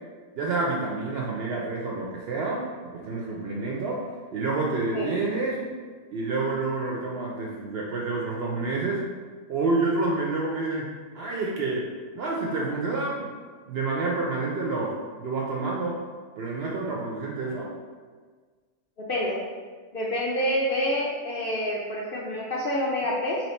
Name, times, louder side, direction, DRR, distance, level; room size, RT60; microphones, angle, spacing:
voice 1, 0.3-4.0 4.3-5.6 6.1-9.0 9.5-10.9 11.1-11.9 12.1-13.3 13.7-16.0 16.4-17.7, right 3 dB, 75° right, -3 dB, 0.5 m, -28 dB
voice 2, 19.9-23.4, equal, 75° left, -4 dB, 0.5 m, -27 dB
3.1 x 2.9 x 4.1 m, 1.5 s
omnidirectional pair, 1.6 m